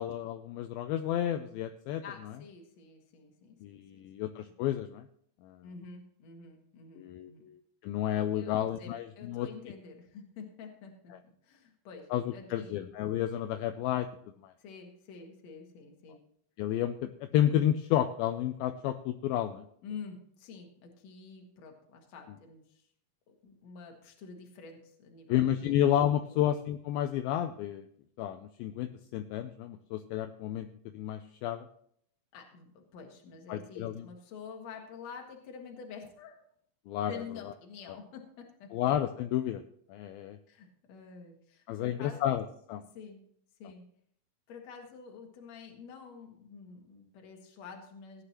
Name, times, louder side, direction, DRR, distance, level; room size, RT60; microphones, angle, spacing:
voice 1, 0.0-2.0 3.6-5.1 5.4-5.6 7.0-7.6 7.8-9.5 12.1-14.1 14.4-14.5 16.6-19.7 25.3-27.9 28.2-30.7 30.9-31.7 33.5-34.0 36.9-37.2 38.7-39.6 39.9-40.4 41.7-42.8, left 11 dB, 80° left, 8 dB, 2.3 m, -31 dB
voice 2, 2.0-4.0 5.6-7.5 8.3-11.1 11.4-12.8 14.6-16.2 19.8-22.8 23.3-25.8 26.3-26.4 32.3-36.4 37.1-38.7 40.5-42.2 42.9-43.2 43.6-43.8 44.5-48.2, left 5 dB, 55° left, 2 dB, 2.4 m, -48 dB
16.5 x 9.8 x 2.9 m, 0.66 s
omnidirectional pair, 4.5 m